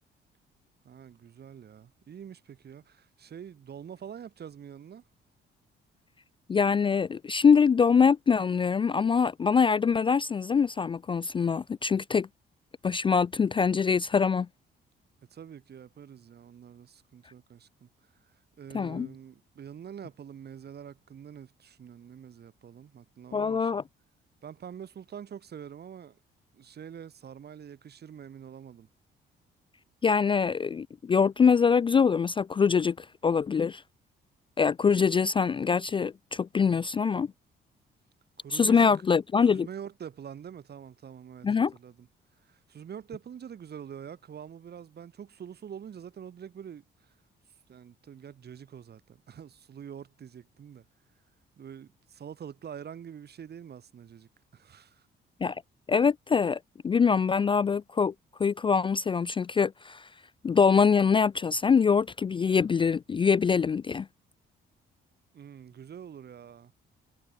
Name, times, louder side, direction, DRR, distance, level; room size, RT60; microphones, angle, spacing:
voice 1, 0.8-5.1 15.3-23.8 24.4-26.2 26.5-28.9 38.4-38.9 39.5-42.1 42.3-47.2 47.7-50.9 51.6-55.1 65.3-66.7, right 8 dB, 55° right, 3.4 m, -45 dB
voice 2, 6.5-12.3 12.8-14.5 18.7-19.1 23.3-23.8 30.0-33.8 34.6-37.3 38.5-39.7 41.4-41.7 55.4-55.6 55.9-58.1 58.4-60.1 60.4-64.1, left 6 dB, 25° left, 0.3 m, -24 dB
cardioid pair, 90°, 20 cm